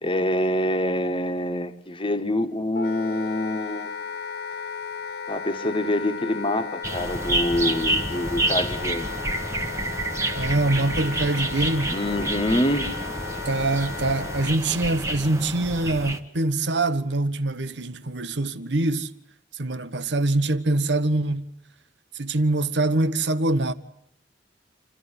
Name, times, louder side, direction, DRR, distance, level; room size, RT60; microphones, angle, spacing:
voice 1, 0.0-3.9 5.3-9.2 11.9-12.9, left 1 dB, 30° left, 1.6 m, -26 dB
Wind instrument woodwind instrument, 2.7-14.6, left 5 dB, 60° left, 1.3 m, -35 dB
sound 1, 6.8-16.2, right 1 dB, 15° right, 1.5 m, -29 dB
voice 2, 10.3-11.9 13.4-19.1 19.5-21.5 22.1-23.7, right 2 dB, 70° right, 1.3 m, -24 dB
28.0 x 14.0 x 9.8 m
head